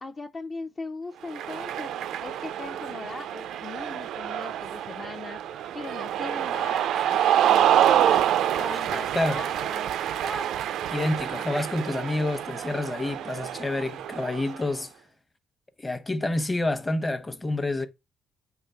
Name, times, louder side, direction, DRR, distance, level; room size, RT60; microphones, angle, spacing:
voice 1, 0.0-5.4 5.7-6.8 7.1-8.3 8.5-9.9, left 3 dB, 35° left, 0.6 m, -39 dB
Cheering, 1.2-14.7, right 11 dB, 80° right, 0.4 m, -27 dB
Chuckle chortle, 6.9-12.1, right 2 dB, 10° right, 0.4 m, -40 dB
voice 2, 10.9-14.9 15.8-17.9, left 2 dB, 20° left, 0.9 m, -28 dB
7.2 x 3.2 x 5.6 m
cardioid pair, 90°, 0 cm